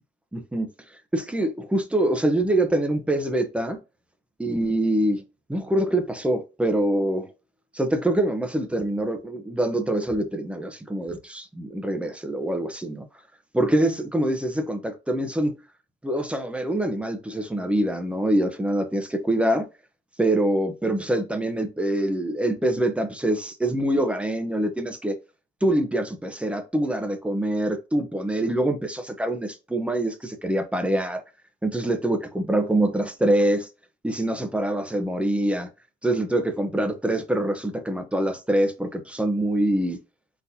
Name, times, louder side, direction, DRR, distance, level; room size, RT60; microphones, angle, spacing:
voice 1, 0.3-0.7 1.1-3.8 4.4-5.2 5.5-7.3 7.7-13.1 13.5-15.6 16.0-19.7 20.2-25.2 25.6-31.2 31.6-33.7 34.0-35.7 36.0-40.0, right 1 dB, 5° right, 0.8 m, -25 dB
4.1 x 4.1 x 2.8 m
cardioid pair, 110°, 17 cm